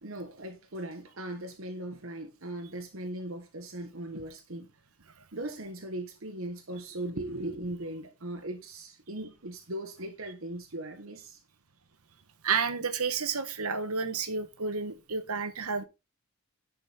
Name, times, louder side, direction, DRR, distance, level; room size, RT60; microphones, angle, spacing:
voice 1, 0.0-4.7 5.3-11.4, right 1 dB, 70° right, 1.3 m, -39 dB
voice 2, 12.4-15.8, right 5 dB, 85° right, 1.2 m, -31 dB
10.5 x 5.3 x 4.1 m
head